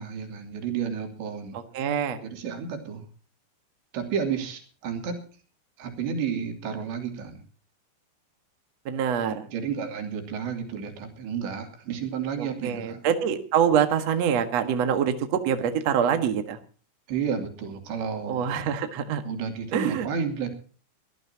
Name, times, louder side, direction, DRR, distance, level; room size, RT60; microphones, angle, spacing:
voice 1, 0.0-1.6 2.2-3.1 3.9-5.2 5.8-7.4 9.3-13.0 17.1-18.5 19.3-20.5, right 7 dB, 75° right, 4 dB, 5.0 m, -31 dB
voice 2, 1.5-2.2 8.9-9.5 12.4-16.6 18.3-19.2 19.7-20.1, right 8 dB, 55° right, 7 dB, 1.9 m, -25 dB
23.0 x 14.5 x 2.9 m, 0.39 s
omnidirectional pair, 5.2 m